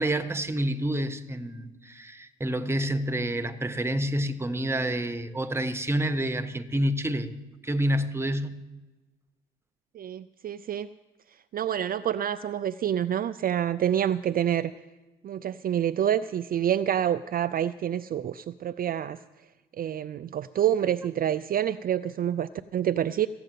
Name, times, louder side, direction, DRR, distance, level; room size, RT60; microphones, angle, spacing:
voice 1, 0.0-7.3 7.6-8.6, right 1 dB, 10° right, 1.1 m, -28 dB
voice 2, 9.9-10.9 11.5-14.7 15.2-19.2 19.7-23.3, right 10 dB, 45° right, 0.4 m, -27 dB
15.0 x 7.8 x 9.2 m
cardioid pair, 90°, 20 cm